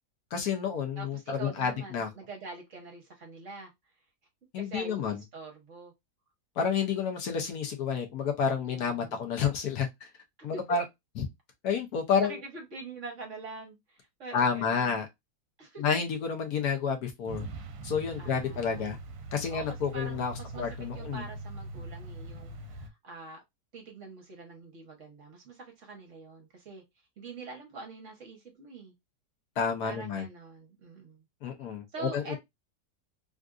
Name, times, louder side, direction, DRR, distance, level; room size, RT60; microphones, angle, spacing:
voice 1, 0.3-2.1 4.5-5.2 6.6-10.1 10.4-10.8 11.2-11.3 11.6-12.3 14.3-15.1 15.8-17.4 17.8-19.0 19.3-21.2 29.6-30.3 31.4-32.4, left 6 dB, 65° left, 1.2 m, -30 dB
voice 2, 1.0-3.7 4.6-5.9 8.7-9.2 10.5-10.8 12.2-15.0 15.6-15.8 18.2-19.0 19.5-20.7 20.9-23.4 23.7-26.8 27.2-28.9 29.8-31.2 31.9-32.4, right 3 dB, 50° right, 1.2 m, -45 dB
Truck, 17.3-22.9, right 3 dB, 70° right, 1.2 m, -42 dB
3.6 x 2.5 x 2.3 m
omnidirectional pair, 1.9 m